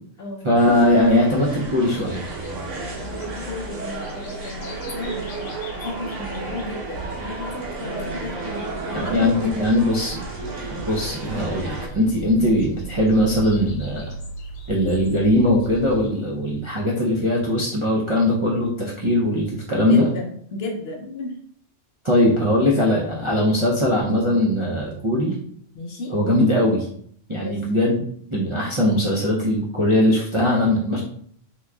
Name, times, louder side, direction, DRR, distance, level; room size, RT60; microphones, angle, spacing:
voice 1, 0.4-2.3 8.9-10.2 10.9-14.1 14.7-20.1 22.0-25.4 26.1-26.9 27.3-31.0, left 1 dB, 55° right, -4 dB, 0.3 m, -20 dB
sound 1, 0.5-11.9, right 3 dB, 85° right, 1.3 m, -33 dB
sound 2, 1.9-16.1, right 2 dB, 85° left, 1.2 m, -38 dB
voice 2, 3.1-9.8 10.7-10.9 19.8-21.4 25.7-26.1 27.4-27.6, left 2 dB, 60° left, 1 dB, 0.7 m, -33 dB
3.6 x 3.0 x 2.2 m, 0.64 s
omnidirectional pair, 1.4 m